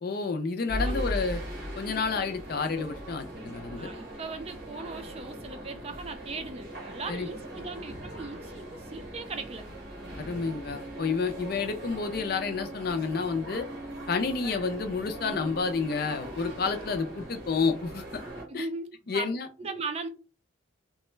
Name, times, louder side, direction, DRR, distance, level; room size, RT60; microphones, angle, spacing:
voice 1, 0.0-1.4 1.8-3.9 7.1-7.3 10.2-13.7 14.1-18.2 18.5-18.7 19.1-19.5, left 4 dB, 50° left, 0.4 m, -30 dB
sound 1, 0.7-18.4, right 1 dB, 60° right, 1.4 m, -39 dB
voice 2, 0.8-1.1 3.8-9.7 18.5-19.3 19.6-20.1, right 3 dB, 30° right, 0.4 m, -38 dB
3.0 x 2.2 x 3.1 m
head